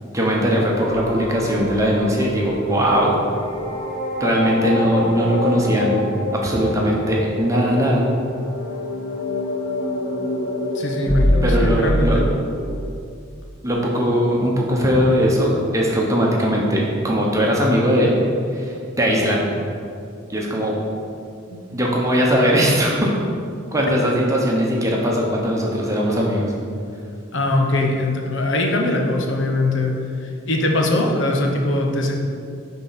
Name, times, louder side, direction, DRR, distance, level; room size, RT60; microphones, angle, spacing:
voice 1, 0.0-3.2 4.2-6.0 6.3-8.0 11.4-12.2 13.6-18.1 18.5-19.4 20.3-20.7 21.7-23.1 23.7-26.5, equal, 15° right, -2 dB, 1.1 m, -19 dB
sound 1, 0.6-12.9, left 1 dB, 45° left, 1.9 m, -25 dB
voice 2, 10.7-12.3 21.5-21.6 27.3-32.2, left 2 dB, 60° left, 1 dB, 1.0 m, -21 dB
9.7 x 3.8 x 5.8 m, 2.4 s
head